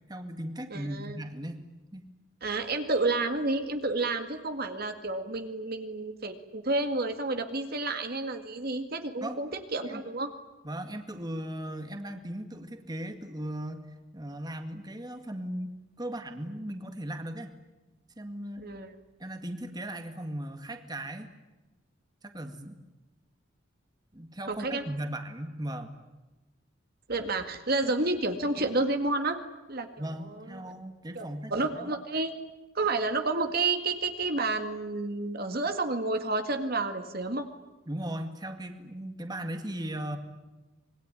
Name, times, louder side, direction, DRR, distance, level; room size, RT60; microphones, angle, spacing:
voice 1, 0.1-1.6 1.9-2.1 9.2-9.4 9.8-10.0 10.6-15.7 16.0-17.5 18.2-18.7 19.2-21.3 22.2-22.8 24.1-25.9 30.0-31.9 37.9-40.2, right 1 dB, 20° right, 6 dB, 2.0 m, -37 dB
voice 2, 0.7-1.2 2.4-10.3 18.6-18.9 24.5-24.8 27.1-29.4 29.7-29.9 30.2-30.6 31.2-32.3 32.7-37.5, right 2 dB, 50° right, 6 dB, 2.0 m, -30 dB
26.0 x 22.0 x 9.9 m, 1.1 s
head